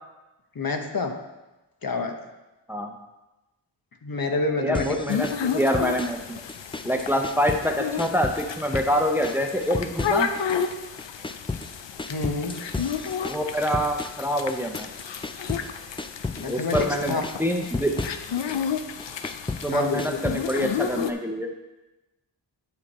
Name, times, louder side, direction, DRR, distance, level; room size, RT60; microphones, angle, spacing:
voice 1, 0.5-1.2 1.8-2.2 4.0-5.0 12.1-12.6 16.3-17.2 19.7-20.2, left 3 dB, 55° left, 4 dB, 1.0 m, -28 dB
voice 2, 4.6-6.4 6.8-10.3 13.2-14.9 16.5-17.9 19.6-21.5, equal, 5° right, 3 dB, 0.8 m, -26 dB
sound 1, 4.7-6.2 6.5-7.7 8.0-8.9 9.2-10.7 11.0-15.7 16.0-16.9 17.2-18.6 19.0-20.7, left 3 dB, 15° left, 0.3 m, -33 dB
sound 2, 5.1-21.1, left 7 dB, 80° left, 0.6 m, -32 dB
10.5 x 5.1 x 4.2 m, 1.0 s
wide cardioid pair, 60°, 43 cm